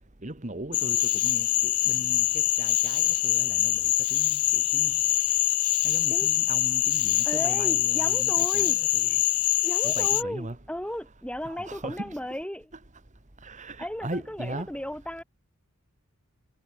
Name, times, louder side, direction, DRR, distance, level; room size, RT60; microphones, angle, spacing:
voice 1, 0.2-5.0 5.8-9.2 9.8-10.6 11.5-12.2 13.4-14.7, right 1 dB, 35° right, 1.8 m, -39 dB
Cricket / Frog, 0.7-10.2, left 16 dB, 80° left, 1.8 m, -24 dB
voice 2, 7.2-9.2 9.6-12.7 13.8-15.2, equal, 5° left, 3.7 m, -35 dB
head